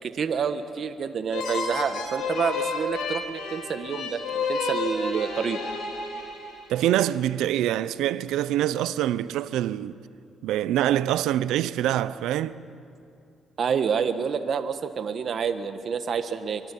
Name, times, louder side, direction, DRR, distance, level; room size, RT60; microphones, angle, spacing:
voice 1, 0.0-5.6 13.6-16.6, right 6 dB, 55° right, 1.4 m, -28 dB
sound 1, 1.3-6.8, left 3 dB, 90° left, 5.9 m, -31 dB
voice 2, 6.7-10.0 10.4-12.6, right 12 dB, 90° right, 0.7 m, -25 dB
24.5 x 24.0 x 8.4 m
cardioid pair, 90°, 0 cm